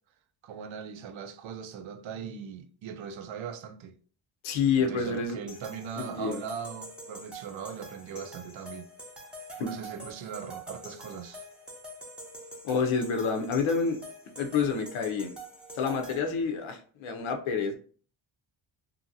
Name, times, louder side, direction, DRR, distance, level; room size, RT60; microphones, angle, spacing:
voice 1, 0.4-4.0 4.8-8.9 9.6-11.5, right 7 dB, 70° right, 0.6 m, -40 dB
voice 2, 4.4-5.4 6.0-6.4 9.6-9.7 12.6-14.0 14.4-15.3 15.8-17.8, left 5 dB, 80° left, 0.6 m, -28 dB
sound 1, 5.5-16.2, right 1 dB, ahead, 0.6 m, -45 dB
2.7 x 2.6 x 2.6 m
cardioid pair, 95°, 49 cm